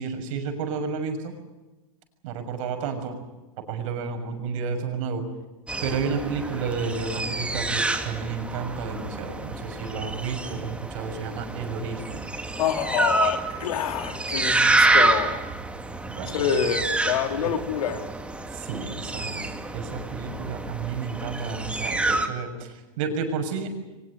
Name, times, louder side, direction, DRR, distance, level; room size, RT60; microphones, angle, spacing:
voice 1, 0.0-1.3 2.2-3.2 3.7-5.2 5.8-12.2 16.1-16.4 17.4-17.6 18.5-23.7, right 5 dB, 60° right, 6 dB, 6.4 m, -31 dB
sound 1, 5.7-22.3, right 2 dB, 5° right, 2.1 m, -28 dB
voice 2, 12.6-15.4 16.3-18.1, left 8 dB, 75° left, 6 dB, 3.7 m, -27 dB
23.5 x 20.5 x 9.5 m, 1.1 s
supercardioid pair, 135°, 19 cm